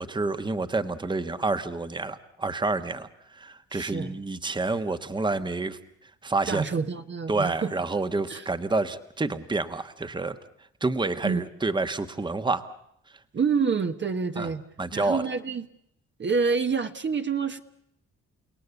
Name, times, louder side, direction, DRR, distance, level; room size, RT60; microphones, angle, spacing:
voice 1, 0.0-3.1 3.3-5.8 6.2-6.6 7.3-10.4 10.8-12.6 14.4-14.5 14.8-15.2, right 3 dB, 15° right, 10 dB, 1.3 m, -28 dB
voice 2, 3.7-4.2 6.5-7.7 8.3-8.5 11.2-11.4 13.3-14.6 14.9-15.7 16.2-17.6, right 5 dB, 40° right, 7 dB, 1.3 m, -27 dB
29.5 x 18.0 x 8.2 m, 0.75 s
cardioid pair, 90°, 30 cm